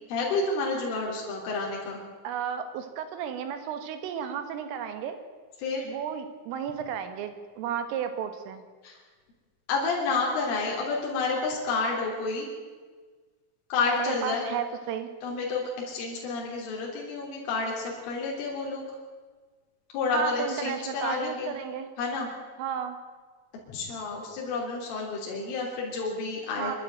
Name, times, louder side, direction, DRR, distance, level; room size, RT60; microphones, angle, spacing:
voice 1, 0.1-2.0 5.6-5.9 8.8-8.9 9.7-12.5 13.7-14.5 15.2-18.8 19.9-21.5 22.0-22.3 23.7-26.8, left 4 dB, 70° left, -2 dB, 5.8 m, -30 dB
voice 2, 2.2-5.2 5.8-8.7 14.0-15.1 20.1-21.9 22.6-23.0 26.6-26.8, right 8 dB, 75° right, 9 dB, 4.0 m, -33 dB
24.5 x 12.5 x 9.1 m, 1.4 s
omnidirectional pair, 5.9 m